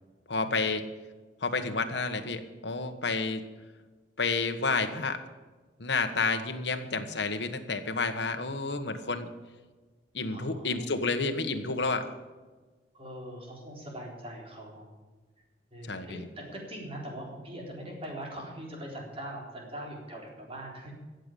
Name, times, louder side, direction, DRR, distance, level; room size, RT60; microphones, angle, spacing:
voice 1, 0.3-0.8 1.4-3.4 4.2-5.2 5.8-9.3 10.1-12.1 15.9-16.2, left 3 dB, 65° left, 6 dB, 1.4 m, -30 dB
voice 2, 6.2-7.0 10.3-11.6 12.9-14.9 15.7-20.9, right 1 dB, 30° right, -1 dB, 3.9 m, -42 dB
14.5 x 7.9 x 8.4 m, 1.3 s
head